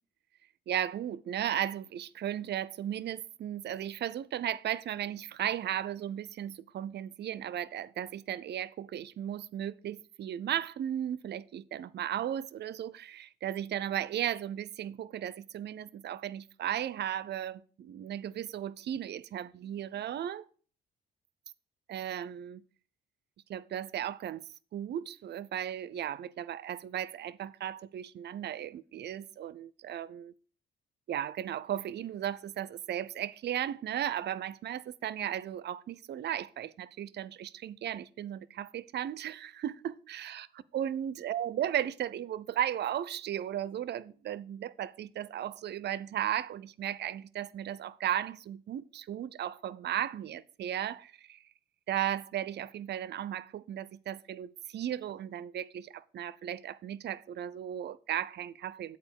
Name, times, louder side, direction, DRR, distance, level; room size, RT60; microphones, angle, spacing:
voice 1, 0.7-20.5 21.9-22.6 23.5-30.3 31.1-40.4 40.7-51.4 51.9-59.0, right 11 dB, 60° right, 0.5 m, -35 dB
8.3 x 4.4 x 6.9 m
cardioid pair, 90°, 20 cm